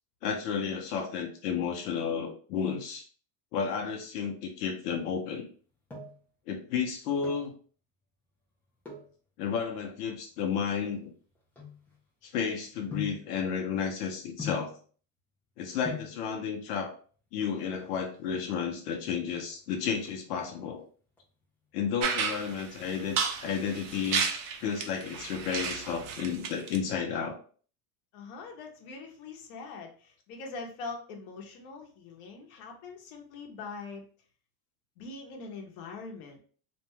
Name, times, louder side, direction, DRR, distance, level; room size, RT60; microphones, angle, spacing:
voice 1, 0.2-3.0 3.5-5.5 6.5-7.5 9.4-11.1 12.2-14.7 15.6-16.9 17.3-20.8 21.7-24.2 24.6-27.4, left 6 dB, 85° left, 2 dB, 0.8 m, -32 dB
sound 1, 5.5-6.3 7.0-7.6 8.8-9.2 9.9-12.3 12.9-13.3 14.4-14.8 15.5-15.6 15.8-16.2 17.3-17.9 18.2-18.3 18.5-18.6 19.0-19.4 19.7-20.7 21.2-21.6 22.0-23.1 23.4-23.5, left 6 dB, 5° left, 0.3 m, -42 dB
sound 2, 22.0-26.8, right 6 dB, 55° right, 0.6 m, -33 dB
voice 2, 28.1-34.0 35.0-36.4, left 4 dB, 55° left, 2 dB, 0.9 m, -43 dB
2.6 x 2.2 x 3.0 m, 0.42 s
supercardioid pair, 145°, 45 cm